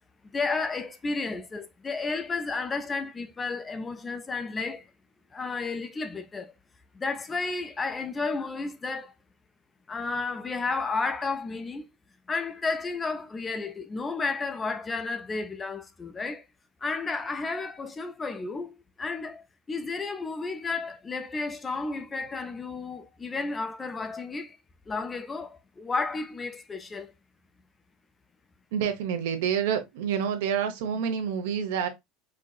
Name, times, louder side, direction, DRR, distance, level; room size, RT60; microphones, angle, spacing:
voice 1, 0.3-4.9 5.3-6.5 6.9-9.1 9.9-11.9 12.3-16.5 16.8-24.6 24.9-27.1, left 4 dB, 15° left, 0.3 m, -32 dB
voice 2, 28.7-31.9, right 8 dB, 75° right, 0.9 m, -28 dB
4.5 x 2.7 x 2.3 m
supercardioid pair, 170°, 0 cm